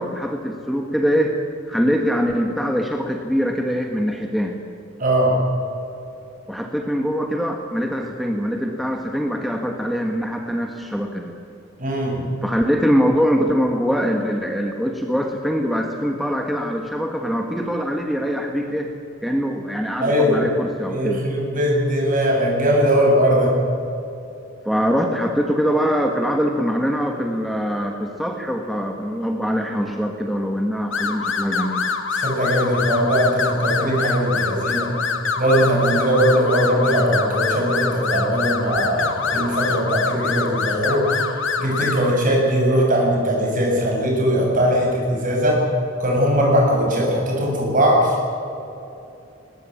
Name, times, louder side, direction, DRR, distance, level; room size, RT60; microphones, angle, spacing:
voice 1, 0.0-1.4 1.7-4.6 6.5-11.3 12.4-18.9 19.2-21.3 24.6-31.9, equal, ahead, 2 dB, 1.4 m, -23 dB
voice 2, 5.0-5.4 11.8-12.2 20.0-20.4 20.9-23.5 32.2-34.9 35.4-41.1 41.6-45.7 46.0-48.3, equal, 45° right, -1 dB, 7.4 m, -19 dB
sound 1, 30.9-42.1, left 5 dB, 70° left, 2.1 m, -25 dB
20.5 x 20.0 x 8.8 m, 2.8 s
head